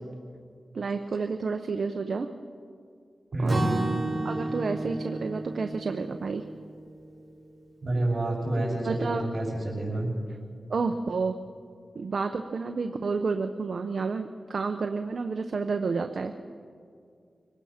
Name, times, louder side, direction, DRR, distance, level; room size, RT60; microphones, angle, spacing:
voice 1, 0.7-2.3 3.4-3.6 4.2-6.4 8.8-9.2 10.7-11.4 11.9-16.3, right 4 dB, 70° right, 6 dB, 0.8 m, -30 dB
voice 2, 3.3-3.8 7.8-10.1, right 2 dB, 50° right, -3 dB, 6.3 m, -28 dB
Acoustic guitar / Strum, 3.5-7.4, right 1 dB, 30° right, 5.9 m, -32 dB
25.0 x 18.0 x 5.9 m, 2.2 s
cardioid pair, 65°, 0 cm